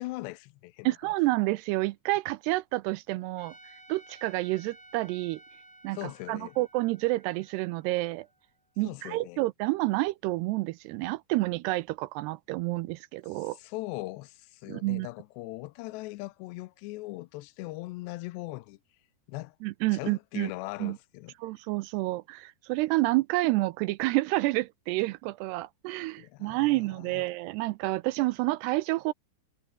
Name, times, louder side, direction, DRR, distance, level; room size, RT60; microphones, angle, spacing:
voice 1, 0.0-0.9 5.9-6.5 8.8-9.4 13.3-18.8 19.3-19.6 19.9-21.3 26.2-27.3, left 20 dB, 80° left, 2.7 m, -40 dB
voice 2, 0.8-3.5 3.9-5.4 5.8-8.3 8.8-13.6 14.7-15.1 19.6-20.5 20.8-21.0 21.4-29.1, right 20 dB, 80° right, 2.5 m, -29 dB
Trumpet, 3.4-8.6, right 1 dB, 10° right, 4.3 m, -55 dB
omnidirectional pair, 5.1 m